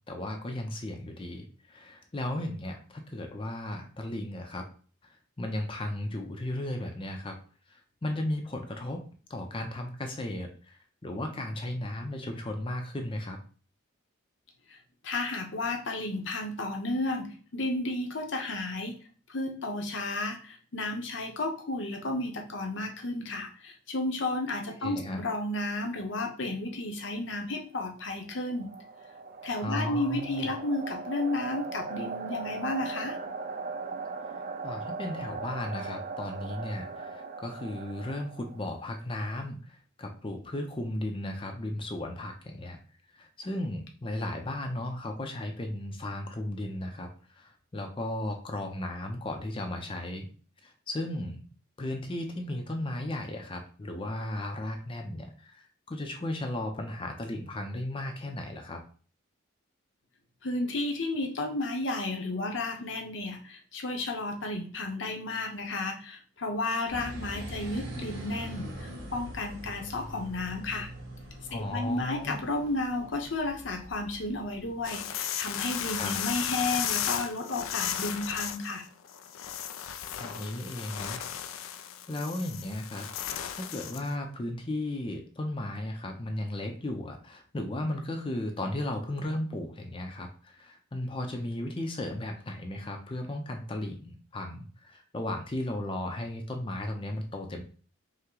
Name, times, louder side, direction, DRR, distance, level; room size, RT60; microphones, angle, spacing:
voice 1, 0.1-4.6 5.0-7.4 7.7-9.0 9.3-13.4 24.8-25.2 29.5-30.5 34.6-42.8 43.1-47.1 47.3-50.3 50.6-51.5 51.8-58.8 71.5-72.5 76.0-76.1 80.2-81.2 82.1-83.1 83.5-97.6, left 1 dB, 25° left, 4 dB, 0.5 m, -35 dB
voice 2, 15.0-18.9 19.3-28.7 29.4-33.2 60.4-70.9 71.5-78.8, left 2 dB, 60° left, 3 dB, 0.9 m, -32 dB
sound 1, 28.0-38.9, right 4 dB, 45° right, 0.3 m, -39 dB
sound 2, 66.9-74.9, equal, 75° right, 1.4 m, -43 dB
sound 3, 74.8-84.1, left 9 dB, 80° left, 0.4 m, -35 dB
5.5 x 2.1 x 3.8 m, 0.41 s
head